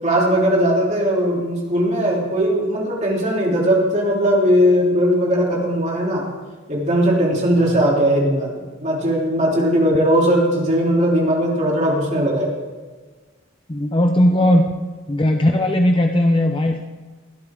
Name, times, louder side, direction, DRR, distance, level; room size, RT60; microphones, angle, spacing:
voice 1, 0.0-6.2 6.7-12.5 14.3-14.6, equal, 30° right, -3 dB, 3.4 m, -18 dB
voice 2, 13.7-14.8 15.1-16.8, left 1 dB, 25° left, 4 dB, 0.6 m, -18 dB
20.0 x 12.0 x 3.8 m, 1.4 s
head